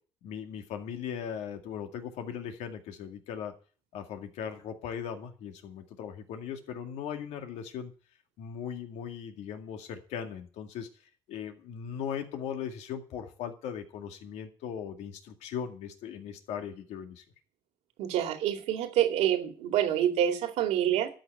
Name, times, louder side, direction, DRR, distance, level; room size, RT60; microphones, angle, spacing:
voice 1, 0.2-3.5 3.9-7.9 8.4-10.9 11.3-17.2, left 8 dB, 80° left, 5 dB, 2.1 m, -38 dB
voice 2, 18.0-21.1, right 10 dB, 80° right, 5 dB, 2.4 m, -27 dB
12.5 x 6.0 x 9.1 m, 0.39 s
cardioid pair, 80°, 11 cm